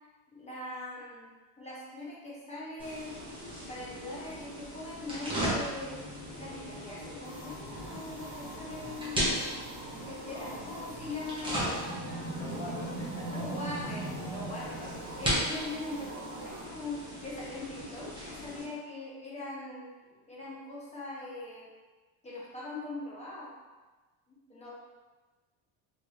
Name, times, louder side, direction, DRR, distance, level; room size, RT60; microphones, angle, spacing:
voice 1, 0.3-1.3 1.6-3.2 3.7-6.0 6.4-9.2 10.0-12.5 13.3-14.8 15.2-19.9 20.3-21.7 22.2-23.5 24.3-24.7, left 2 dB, 15° left, -6 dB, 0.6 m, -41 dB
sound 1, 2.8-18.6, equal, 10° right, 0.9 m, -37 dB
sound 2, 7.2-16.7, right 3 dB, 30° right, 0.4 m, -46 dB
voice 2, 10.1-10.9 12.3-13.4 14.8-15.2, left 2 dB, 85° left, -11 dB, 1.2 m, -45 dB
3.2 x 2.9 x 2.6 m, 1.3 s
cardioid pair, 140°, 49 cm